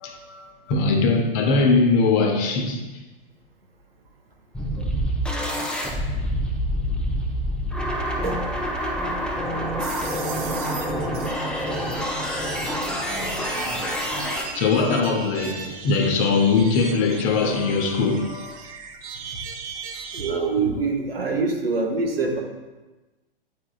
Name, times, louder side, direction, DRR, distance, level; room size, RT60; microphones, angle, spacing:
voice 1, 0.0-2.9 14.5-18.7, left 4 dB, 35° left, 0.8 m, -21 dB
sound 1, 4.5-14.4, equal, 5° left, 0.5 m, -27 dB
sound 2, 9.8-20.3, right 6 dB, 40° right, 0.7 m, -38 dB
voice 2, 20.1-22.4, right 4 dB, 75° right, 1.1 m, -24 dB
8.9 x 4.7 x 2.4 m
figure-of-eight pair, 105°, 29 cm